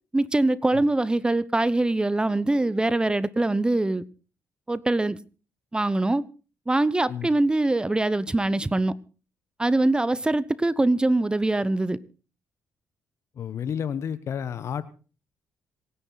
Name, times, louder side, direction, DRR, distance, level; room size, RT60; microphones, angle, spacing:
voice 1, 0.1-4.0 4.7-5.2 5.7-6.2 6.7-8.9 9.6-12.0, right 2 dB, 15° right, 0.9 m, -23 dB
voice 2, 13.4-14.8, left 8 dB, 60° left, 1.1 m, -31 dB
26.5 x 10.0 x 4.1 m
supercardioid pair, 65°, 5 cm